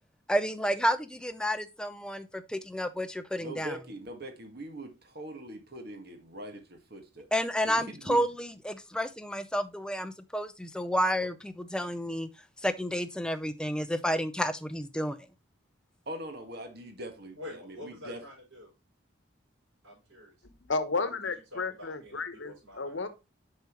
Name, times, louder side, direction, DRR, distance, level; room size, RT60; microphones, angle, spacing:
voice 1, 0.3-3.8 7.3-12.3 12.6-15.2, equal, 5° left, 0.5 m, -30 dB
voice 2, 3.4-7.3 7.6-8.3 16.1-18.2, right 1 dB, 50° right, 1.6 m, -42 dB
voice 3, 17.4-18.7 19.8-20.3 21.0-23.0, left 1 dB, 75° right, 4.7 m, -47 dB
voice 4, 20.4-23.1, left 3 dB, 65° left, 1.0 m, -33 dB
7.2 x 5.7 x 3.0 m
head